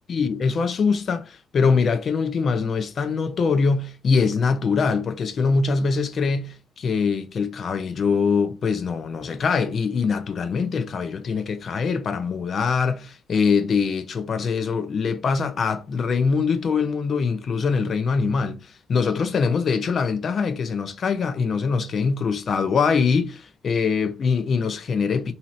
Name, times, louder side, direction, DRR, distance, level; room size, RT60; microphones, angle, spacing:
voice 1, 0.1-25.3, left 5 dB, 50° left, 0.5 m, -23 dB
2.7 x 2.5 x 3.0 m
cardioid pair, 90°, 0 cm